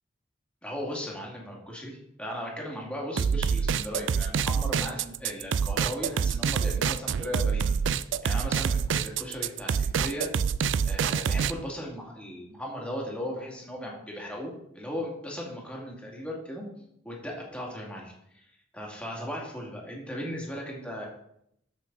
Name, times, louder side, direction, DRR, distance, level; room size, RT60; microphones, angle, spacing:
voice 1, 0.6-10.3 10.8-16.7 17.0-18.5 18.7-21.1, equal, 5° left, -3 dB, 2.6 m, -37 dB
sound 1, 3.2-11.5, right 6 dB, 90° right, 0.4 m, -26 dB
13.5 x 5.9 x 4.1 m, 0.74 s
head